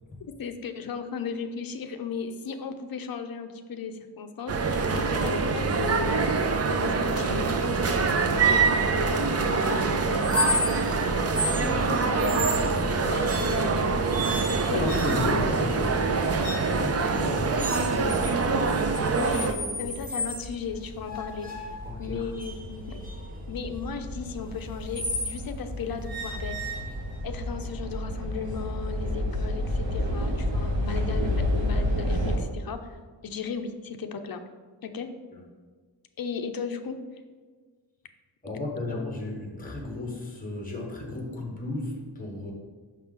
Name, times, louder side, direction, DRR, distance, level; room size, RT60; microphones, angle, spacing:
voice 1, 0.2-6.3 6.7-8.0 8.2-10.7 11.4-12.5 12.9-14.1 14.4-15.2 17.4-17.7 19.2-21.5 22.0-23.1 23.5-26.8 27.2-33.0 33.2-34.4 34.8-35.1 36.2-37.0, left 5 dB, 55° left, 7 dB, 0.6 m, -36 dB
sound 1, 4.5-19.5, right 4 dB, 35° right, 0.4 m, -25 dB
sound 2, 10.2-10.9 11.3-11.6 12.2-12.7 13.2-13.7 14.1-15.5 16.4-16.8 17.6-18.3 18.7-20.4 21.0-25.4 26.0-27.2, left 1 dB, 20° right, 1.1 m, -33 dB
voice 2, 14.7-19.0 19.4-19.9 21.8-22.3 38.4-42.5, left 2 dB, 20° left, -1 dB, 1.3 m, -33 dB
sound 3, 14.9-32.4, left 1 dB, 80° right, 1.2 m, -32 dB
5.7 x 5.7 x 3.7 m, 1.5 s
wide cardioid pair, 170°, 44 cm